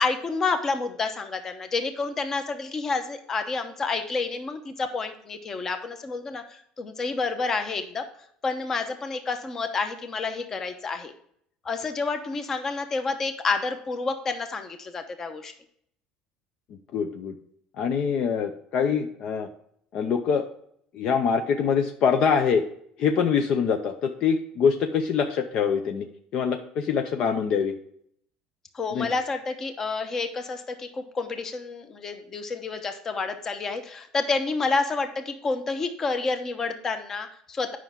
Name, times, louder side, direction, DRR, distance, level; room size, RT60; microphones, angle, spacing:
voice 1, 0.0-8.0 8.4-11.1 11.6-15.5 28.7-37.8, left 4 dB, 20° left, 7 dB, 0.9 m, -29 dB
voice 2, 16.9-17.3 17.8-19.5 19.9-20.4 20.9-22.6 23.0-26.1 26.3-27.7 28.9-29.1, left 6 dB, 45° left, 6 dB, 0.6 m, -24 dB
9.7 x 5.8 x 3.6 m, 0.67 s
cardioid pair, 165°, 2 cm